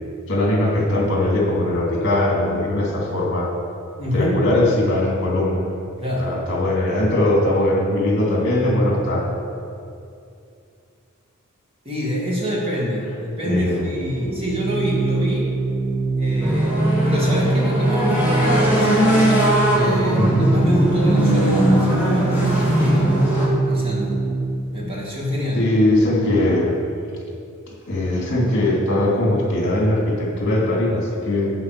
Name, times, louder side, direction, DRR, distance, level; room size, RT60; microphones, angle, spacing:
voice 1, 0.3-3.5 4.1-5.6 6.2-9.3 13.4-13.9 20.1-20.4 25.5-26.8 27.7-31.5, left 1 dB, 55° left, -3 dB, 2.6 m, -20 dB
voice 2, 4.0-4.4 6.0-6.3 11.8-15.5 16.2-19.1 19.6-23.3 23.7-24.2 24.7-25.6, equal, 25° right, -5 dB, 2.2 m, -26 dB
Organ, 14.0-24.8, right 3 dB, 40° right, 1.4 m, -24 dB
sound 1, 16.4-23.5, equal, 10° right, 2.9 m, -20 dB
8.6 x 8.0 x 6.7 m, 2.5 s
head